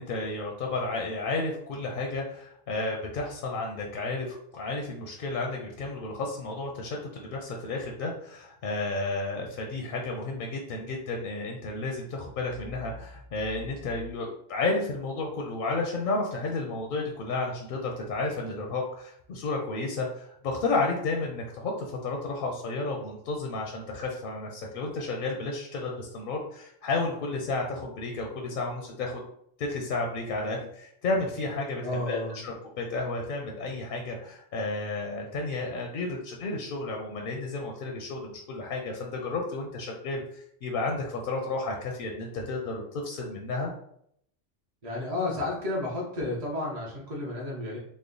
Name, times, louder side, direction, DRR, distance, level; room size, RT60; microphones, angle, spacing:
voice 1, 0.0-4.3 4.5-29.2 29.6-43.7, left 3 dB, 60° left, 1 dB, 0.6 m, -32 dB
voice 2, 31.8-32.4 44.8-47.8, left 2 dB, 40° right, -3 dB, 0.7 m, -32 dB
3.2 x 2.0 x 3.7 m, 0.70 s
omnidirectional pair, 1.2 m